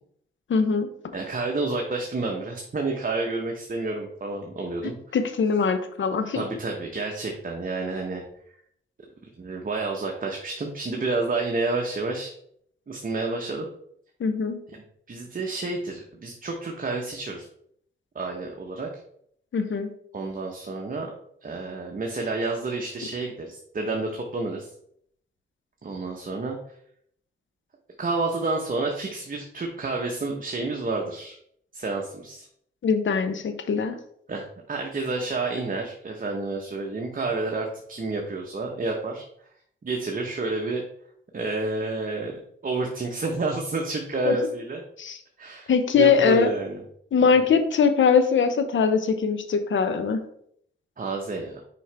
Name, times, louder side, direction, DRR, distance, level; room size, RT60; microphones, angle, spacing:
voice 1, 0.5-0.9 4.8-6.4 14.2-14.6 19.5-19.9 32.8-33.9 44.3-44.4 45.0-45.2 45.7-46.5 47.1-50.2, left 5 dB, 70° left, 9 dB, 0.8 m, -22 dB
voice 2, 1.1-4.9 6.3-8.2 9.4-12.3 12.9-13.7 15.1-17.5 18.1-18.9 20.1-21.1 21.4-24.7 25.8-26.6 28.0-31.4 31.7-32.5 34.3-39.2 39.8-40.8 41.3-42.3 42.6-44.8 45.4-46.8 51.0-51.6, right 3 dB, 45° right, 1 dB, 1.1 m, -29 dB
5.8 x 5.0 x 3.5 m, 0.68 s
cardioid pair, 65°, 20 cm